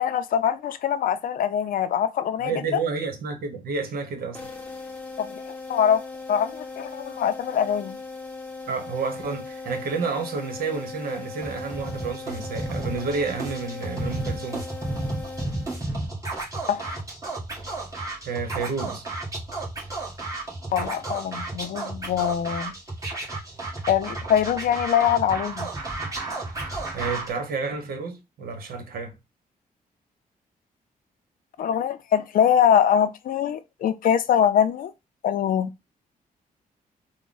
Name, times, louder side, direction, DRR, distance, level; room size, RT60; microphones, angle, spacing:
voice 1, 0.0-2.5 5.2-6.0 6.3-8.0 16.7-17.0 20.7-22.7 23.9-25.7 31.6-34.9 35.2-35.7, left 9 dB, 65° left, 0.4 m, -23 dB
voice 2, 2.4-4.4 8.7-14.7 18.2-19.0 26.6-29.2, right 4 dB, 75° right, 1.0 m, -30 dB
sound 1, 4.3-16.1, left 3 dB, 10° left, 0.8 m, -39 dB
Scratching (performance technique), 11.4-27.3, right 2 dB, 20° right, 1.5 m, -33 dB
3.6 x 2.1 x 3.8 m
cardioid pair, 120°, 15 cm